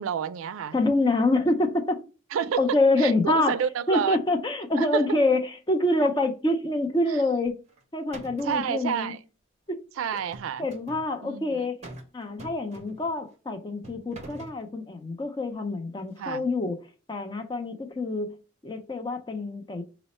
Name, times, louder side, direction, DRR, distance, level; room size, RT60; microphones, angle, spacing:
voice 1, 0.0-0.8 2.3-4.2 4.8-5.2 8.4-9.2 10.0-10.7 11.2-11.6 16.2-16.4, right 7 dB, 90° right, 0.3 m, -29 dB
voice 2, 0.7-2.0 2.6-3.5 3.9-7.6 7.9-9.1 9.7-9.8 10.6-11.8 12.1-16.8 17.1-18.4 18.6-19.8, left 2 dB, 20° left, 0.5 m, -26 dB
sound 1, 7.5-7.8 8.1-8.7 10.1-11.1 11.8-12.1 12.4-13.2 13.8-14.6, right 2 dB, 35° right, 0.6 m, -44 dB
4.0 x 2.0 x 4.1 m
head